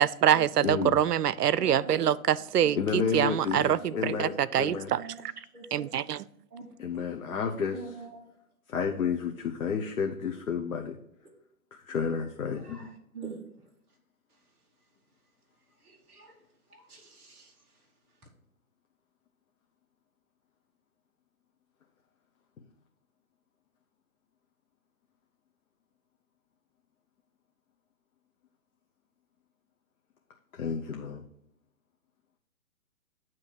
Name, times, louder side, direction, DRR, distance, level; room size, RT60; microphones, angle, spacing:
voice 1, 0.0-5.0 5.7-6.2, right 10 dB, 85° right, 19 dB, 0.5 m, -25 dB
voice 2, 0.6-1.0 2.7-4.9 6.8-7.9 8.7-10.9 11.7-12.9 30.5-31.2, left 6 dB, 65° left, 2 dB, 0.9 m, -31 dB
voice 3, 1.6-2.0 2.6-2.7 3.5-4.3 4.6-5.2 5.5-5.8 6.5-6.7 7.7-8.3 12.5-13.4 15.8-16.4 16.7-17.5, right 3 dB, 10° right, -4 dB, 0.6 m, -43 dB
9.1 x 3.1 x 6.0 m, 0.78 s
hypercardioid pair, 140°, 45 cm